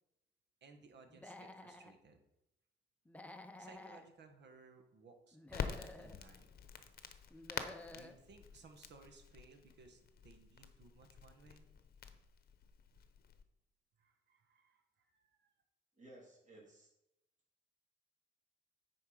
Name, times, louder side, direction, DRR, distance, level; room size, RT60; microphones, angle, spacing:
voice 1, 0.6-2.2 3.6-6.5 7.9-11.7 14.0-15.5, right 4 dB, 60° right, 6 dB, 1.4 m, -61 dB
Human voice / Animal, 1.1-1.9 3.1-4.0 5.3-6.2 7.3-8.2, left 2 dB, 5° left, 0.7 m, -52 dB
Crackle, 5.5-13.4, left 7 dB, 50° left, 0.9 m, -48 dB
voice 2, 15.9-16.9, right 1 dB, 40° right, -3 dB, 3.3 m, -58 dB
9.4 x 4.6 x 5.0 m, 0.87 s
cardioid pair, 90°, 20 cm